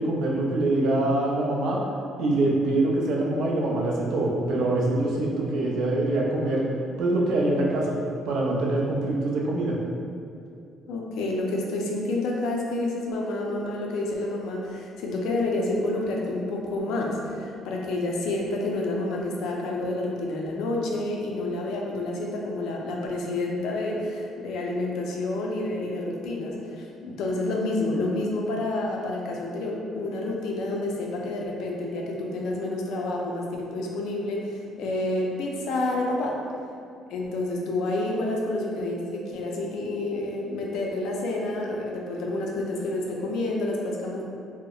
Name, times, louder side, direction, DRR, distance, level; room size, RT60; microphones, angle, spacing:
voice 1, 0.0-1.8 2.2-6.6 7.0-7.9 8.2-9.8, right 2 dB, 70° right, -2 dB, 0.4 m, -24 dB
voice 2, 10.9-36.4 37.1-44.2, left 2 dB, 75° left, -1 dB, 0.4 m, -29 dB
2.8 x 2.0 x 2.3 m, 2.4 s
cardioid pair, 145°, 0 cm